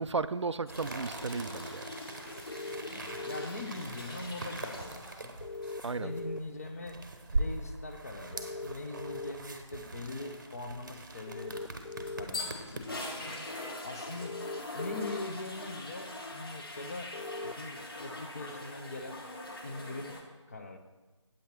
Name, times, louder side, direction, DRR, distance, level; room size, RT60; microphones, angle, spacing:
voice 1, 0.0-1.9 5.8-6.1, right 4 dB, 65° right, 14 dB, 0.4 m, -34 dB
sound 1, 0.7-5.2 5.5-5.9 11.7-20.2, left 2 dB, 50° left, 1.5 m, -43 dB
sound 2, 0.7-13.1, right 2 dB, 40° right, 0.8 m, -41 dB
sound 3, 2.5-3.5 5.4-6.4 8.3-9.3 11.3-12.2 14.2-15.2 17.1-17.5, left 3 dB, 80° left, 0.4 m, -40 dB
voice 2, 2.9-5.4 6.0-7.0 7.3-11.6 12.1-12.9 13.8-14.4 14.7-19.2 19.6-20.2 20.5-20.8, left 2 dB, 30° left, 5 dB, 0.7 m, -42 dB
8.7 x 7.8 x 4.4 m, 1.2 s
figure-of-eight pair, 160°, 16 cm